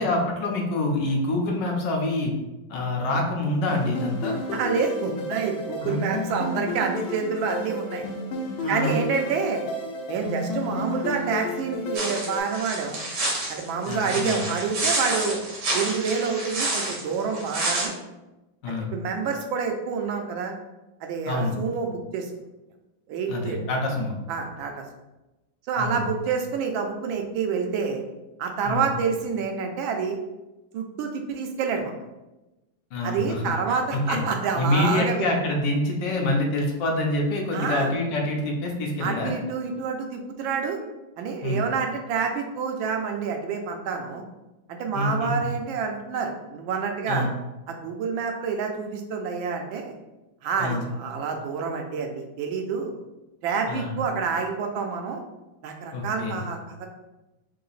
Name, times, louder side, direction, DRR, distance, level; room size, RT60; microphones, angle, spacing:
voice 1, 0.0-2.3 2.7-4.4 5.8-6.0 8.6-9.0 13.8-14.4 18.6-18.9 21.2-21.6 23.3-24.1 25.8-26.0 28.6-28.9 32.9-34.2 34.6-39.3 41.4-41.6 44.9-45.3 47.1-47.3 50.6-50.9 53.7-54.0 55.9-56.4, left 2 dB, 70° left, 0 dB, 1.4 m, -26 dB
sound 1, 3.7-12.4, left 1 dB, 90° left, 1.4 m, -32 dB
voice 2, 4.5-8.0 8.7-9.6 10.1-13.0 13.5-15.4 15.7-17.9 18.7-20.5 21.0-22.3 23.1-23.6 24.3-24.7 25.7-28.0 28.4-30.2 30.7-31.9 33.0-35.3 37.5-37.9 39.0-40.8 41.2-44.2 44.7-47.3 47.7-50.0 50.4-52.9 53.4-55.2 55.6-56.9, right 5 dB, 90° right, 3 dB, 1.4 m, -28 dB
sound 2, 11.9-17.9, right 2 dB, 65° right, 1.7 m, -29 dB
3.8 x 2.8 x 4.0 m, 1.0 s
omnidirectional pair, 2.1 m